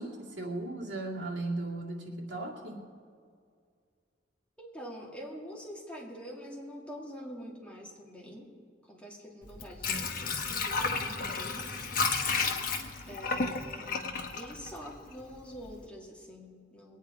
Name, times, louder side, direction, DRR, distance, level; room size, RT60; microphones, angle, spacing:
voice 1, 0.0-2.8, right 2 dB, 80° right, -2 dB, 2.3 m, -37 dB
voice 2, 4.6-8.5 8.9-12.1 13.1-14.1 14.3-17.0, equal, 5° left, -3 dB, 2.0 m, -45 dB
Water / Sink (filling or washing), 9.4-15.3 15.7-15.8, left 4 dB, 50° left, 1.2 m, -32 dB
22.0 x 9.3 x 4.8 m, 2.2 s
head